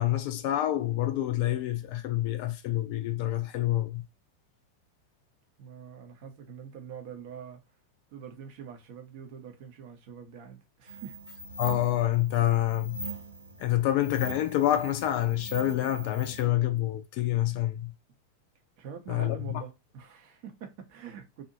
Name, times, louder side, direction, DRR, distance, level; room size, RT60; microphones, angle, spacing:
voice 1, 0.0-4.0 11.6-13.0 13.6-17.9 19.1-19.6, left 13 dB, 45° left, 0.4 m, -27 dB
voice 2, 5.6-7.6 8.1-11.2 18.8-21.4, right 7 dB, 45° right, 0.8 m, -44 dB
sound 1, 10.9-16.4, right 2 dB, 85° right, 1.0 m, -42 dB
2.7 x 2.5 x 2.7 m
figure-of-eight pair, 90°, 0 cm